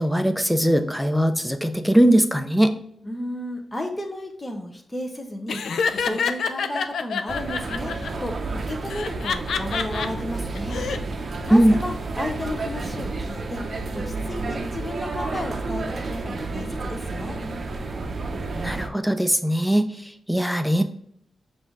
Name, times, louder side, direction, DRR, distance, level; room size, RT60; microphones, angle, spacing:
voice 1, 0.0-2.8 11.5-11.8 18.5-20.8, right 1 dB, ahead, 8 dB, 0.5 m, -20 dB
voice 2, 3.0-5.6 6.0-8.0 8.2-8.3 8.7-10.8 11.4-13.6 13.9-17.4, left 1 dB, 20° left, 3 dB, 0.9 m, -33 dB
Laughter, 5.5-8.1 8.9-10.1 10.5-11.0, left 6 dB, 80° left, 0.3 m, -27 dB
sound 1, 7.3-18.9, right 3 dB, 50° right, 0.6 m, -31 dB
5.5 x 2.7 x 3.6 m, 0.67 s
cardioid pair, 75°, 0 cm